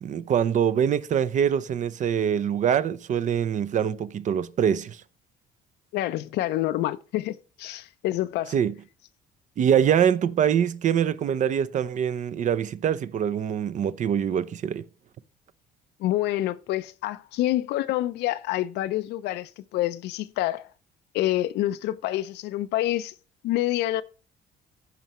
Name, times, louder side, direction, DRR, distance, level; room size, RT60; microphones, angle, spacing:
voice 1, 0.0-5.0 8.5-8.7 9.6-14.9, right 8 dB, 45° right, 0.6 m, -24 dB
voice 2, 5.9-8.5 16.0-20.7 21.1-23.1 23.4-24.0, left 15 dB, 85° left, 0.6 m, -27 dB
14.5 x 5.6 x 3.0 m
cardioid pair, 110°, 17 cm